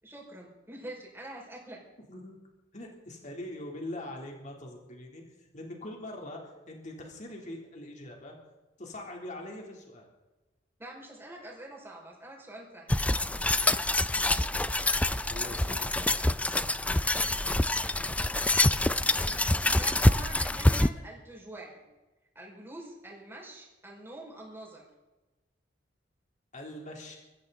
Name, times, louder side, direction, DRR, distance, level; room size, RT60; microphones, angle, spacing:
voice 1, 0.0-1.8 10.8-12.9 19.3-21.8 22.3-24.8, right 1 dB, 15° right, -2 dB, 5.6 m, -45 dB
voice 2, 2.7-8.3 8.8-10.1 14.1-14.5 15.3-16.7 26.5-27.2, left 1 dB, 40° left, 1 dB, 3.4 m, -43 dB
sound 1, 12.9-20.9, left 1 dB, 5° left, 0.5 m, -26 dB
23.5 x 15.0 x 4.1 m, 1.1 s
head